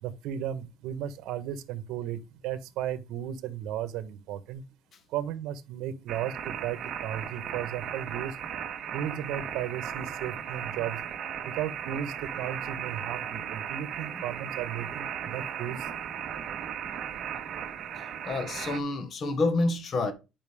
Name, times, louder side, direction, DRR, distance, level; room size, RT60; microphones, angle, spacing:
voice 1, 0.0-4.6 5.1-8.4 8.9-11.0 11.4-15.9, right 10 dB, 70° right, 1.4 m, -35 dB
sound 1, 6.1-18.8, right 8 dB, 45° right, 1.9 m, -36 dB
voice 2, 17.9-20.1, left 2 dB, 35° left, 1.6 m, -29 dB
10.5 x 5.8 x 3.6 m
cardioid pair, 150°, 0 cm